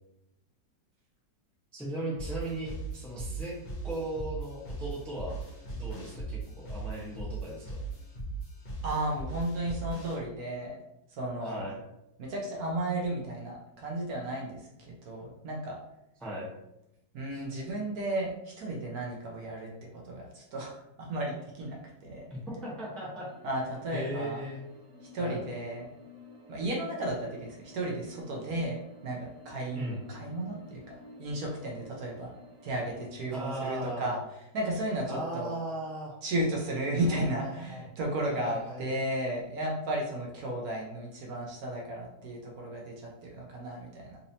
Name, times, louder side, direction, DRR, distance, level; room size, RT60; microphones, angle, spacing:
voice 1, 1.7-3.6 3.8-5.4 5.7-7.8 11.4-11.8 16.2-16.5 17.3-17.4 22.3-23.3 23.9-24.6 25.2-25.4 29.7-30.0 33.3-34.2 35.1-36.1 37.0-37.8 38.3-38.8, right 1 dB, ahead, -6 dB, 0.5 m, -37 dB
sound 1, 2.2-10.2, right 3 dB, 80° left, 1.7 m, -39 dB
voice 2, 8.8-10.8 11.1-11.6 12.2-15.8 17.1-22.3 23.4-24.4 25.1-25.9 26.5-32.3 32.6-34.2 34.5-35.5 36.2-44.2, right 1 dB, 65° right, -2 dB, 1.1 m, -34 dB
sound 2, 23.2-33.4, left 2 dB, 40° right, 1.3 m, -52 dB
4.1 x 2.7 x 2.7 m, 0.87 s
omnidirectional pair, 1.9 m